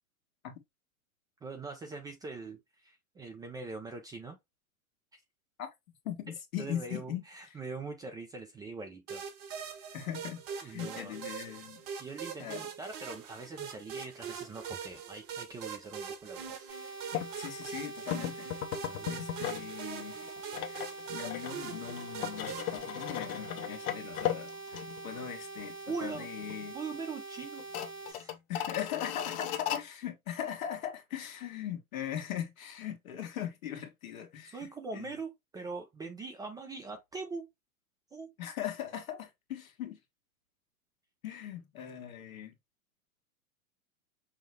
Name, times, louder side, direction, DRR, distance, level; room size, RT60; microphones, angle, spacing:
voice 1, 1.4-4.4 5.1-5.2 6.6-9.2 10.6-11.1 12.0-16.7 18.8-19.2 25.9-26.3 26.7-27.7 28.1-28.4 34.5-37.5 38.1-38.3, right 4 dB, 10° right, 0.4 m, -42 dB
voice 2, 6.0-7.2 7.5-7.6 9.9-11.8 12.4-12.7 17.4-18.5 19.1-20.2 20.7-26.8 28.5-34.7 34.9-35.1 38.4-40.0 41.2-42.5, left 10 dB, 75° left, 1.4 m, -40 dB
sound 1, 9.1-22.8, right 7 dB, 40° right, 1.2 m, -43 dB
sound 2, 16.7-28.1, right 3 dB, 90° right, 2.1 m, -45 dB
sound 3, 17.1-17.3 18.1-19.7 20.0-25.3 25.6-25.7 26.1-26.7 26.9-27.0 27.6-29.8, left 11 dB, 50° left, 0.8 m, -37 dB
5.7 x 2.0 x 3.2 m
hypercardioid pair, 110°, 42 cm